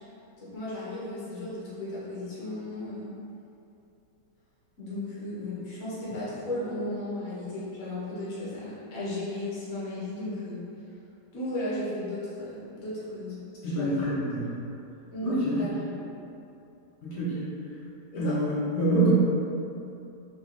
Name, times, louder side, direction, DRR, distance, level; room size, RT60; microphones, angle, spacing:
voice 1, 0.4-3.1 4.8-10.7 11.3-14.1 15.1-15.9 18.1-18.4, left 1 dB, 55° left, -9 dB, 1.3 m, -35 dB
voice 2, 13.6-14.5 15.2-15.6 17.0-17.5 18.2-19.1, right 1 dB, 75° left, -10 dB, 1.5 m, -26 dB
4.0 x 2.9 x 3.0 m, 2.7 s
omnidirectional pair, 1.8 m